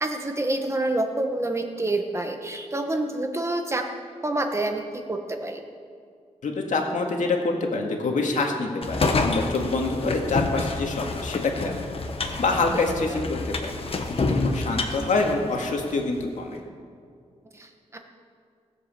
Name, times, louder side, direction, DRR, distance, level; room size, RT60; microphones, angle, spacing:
voice 1, 0.0-3.8 4.2-4.8 5.1-5.6 13.1-13.2 17.5-18.0, right 2 dB, 20° right, 4 dB, 1.2 m, -27 dB
voice 2, 6.4-13.8 14.1-16.6, left 3 dB, 85° left, 1 dB, 2.0 m, -26 dB
sound 1, 8.8-16.0, left 3 dB, 50° left, 1.2 m, -28 dB
18.0 x 7.9 x 7.3 m, 2.3 s
wide cardioid pair, 155°, 13 cm